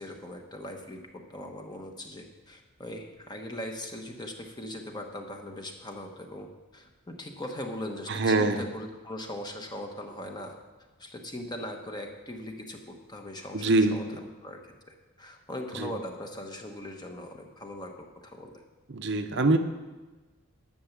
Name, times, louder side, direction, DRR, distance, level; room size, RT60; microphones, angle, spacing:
voice 1, 0.0-10.5 11.0-14.1 14.4-18.5, left 1 dB, 20° left, 3 dB, 1.1 m, -40 dB
voice 2, 8.1-8.6 13.5-14.0 15.7-15.9 18.9-19.6, right 2 dB, 50° right, 7 dB, 0.7 m, -24 dB
11.0 x 6.9 x 7.2 m, 1.2 s
head